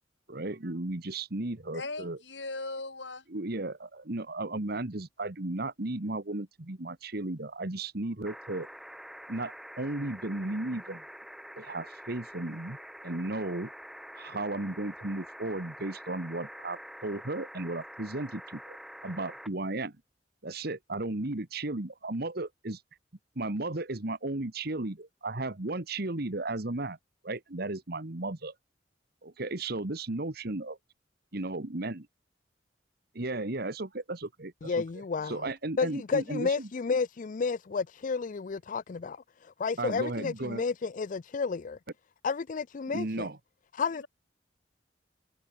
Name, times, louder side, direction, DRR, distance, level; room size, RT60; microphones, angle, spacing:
voice 1, 0.3-2.2 3.3-8.7 9.3-11.0 11.6-12.8 13.0-13.7 14.1-18.8 19.0-19.9 20.4-22.8 23.3-27.0 27.2-28.5 29.2-30.8 31.3-32.1 33.1-34.7 35.3-36.7 39.8-40.6 42.9-43.4, right 2 dB, 55° right, 1.5 m, -35 dB
voice 2, 1.7-3.3 44.0-44.1, left 2 dB, 70° left, 7.5 m, -38 dB
sound 1, 8.2-19.5 20.9-21.0, equal, ahead, 2.3 m, -46 dB
voice 3, 34.6-35.5 35.8-41.8 42.2-43.3 43.7-44.0, left 5 dB, 45° left, 0.4 m, -31 dB
head